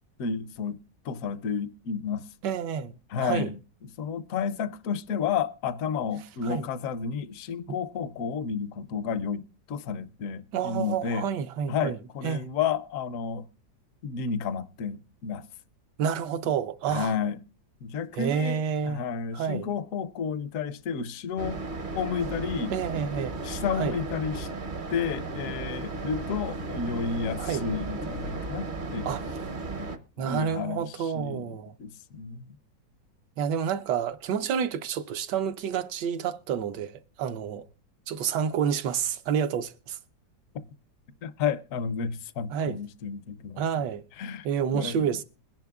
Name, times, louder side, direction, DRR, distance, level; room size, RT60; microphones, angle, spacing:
voice 1, 0.2-0.8 1.0-2.3 3.1-3.6 4.0-11.3 11.7-13.5 14.0-15.4 16.9-17.4 17.8-21.6 21.9-22.7 23.4-24.5 24.9-29.1 29.8-29.9 30.2-32.5 40.5-40.6 41.2-43.6 44.2-44.5 44.7-45.1, left 6 dB, 60° left, 0.9 m, -31 dB
voice 2, 2.4-3.5 6.4-6.7 7.7-7.8 10.5-12.0 12.2-12.5 16.0-17.1 18.1-19.0 19.3-19.7 22.7-23.4 23.7-24.0 27.4-27.7 29.0-29.2 30.2-31.7 33.4-37.6 38.1-40.0 42.5-42.8 43.6-44.0 44.4-45.2, right 7 dB, 75° right, 1.3 m, -29 dB
sound 1, 21.4-30.0, right 3 dB, 40° right, 0.7 m, -35 dB
22.0 x 10.5 x 2.4 m
omnidirectional pair, 1.9 m